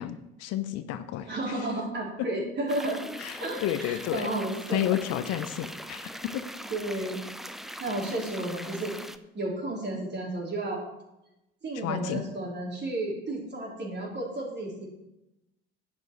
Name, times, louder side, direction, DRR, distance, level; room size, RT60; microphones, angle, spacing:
voice 1, 0.0-1.3 3.2-4.3 4.7-6.4 11.8-12.2, left 12 dB, 55° left, 11 dB, 0.8 m, -31 dB
voice 2, 1.3-3.1 3.4-4.9 6.7-7.2 7.8-8.9 9.3-10.8 11.6-14.9, right 1 dB, 35° right, -1 dB, 3.9 m, -32 dB
sound 1, 2.7-9.2, equal, ahead, 0.7 m, -41 dB
11.0 x 9.1 x 4.6 m, 0.91 s
figure-of-eight pair, 55°, 30 cm